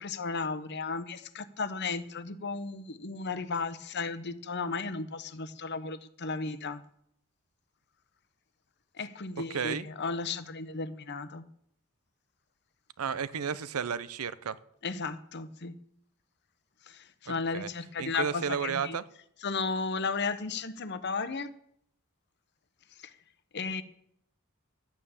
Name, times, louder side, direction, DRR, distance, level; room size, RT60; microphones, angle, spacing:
voice 1, 0.0-6.8 8.9-11.4 14.8-15.7 16.9-19.0 19.4-21.5 23.0-23.1 23.5-23.8, left 4 dB, 50° left, 0.8 m, -34 dB
voice 2, 9.5-9.9 13.0-14.6 17.3-17.7 18.0-19.0, right 6 dB, 80° right, 0.6 m, -33 dB
12.5 x 8.9 x 7.1 m
head